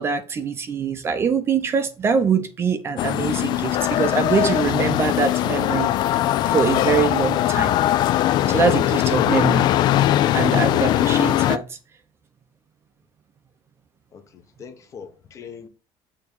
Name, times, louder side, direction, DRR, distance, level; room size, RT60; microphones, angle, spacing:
voice 1, 0.0-5.9 6.5-7.8 8.5-9.7 10.3-11.8, right 6 dB, 25° right, 0.6 m, -23 dB
sound 1, 3.0-11.6, left 13 dB, 45° left, 0.4 m, -20 dB
voice 2, 14.1-15.7, left 6 dB, 30° left, 0.9 m, -41 dB
6.9 x 3.6 x 6.2 m
cardioid pair, 170°, 10 cm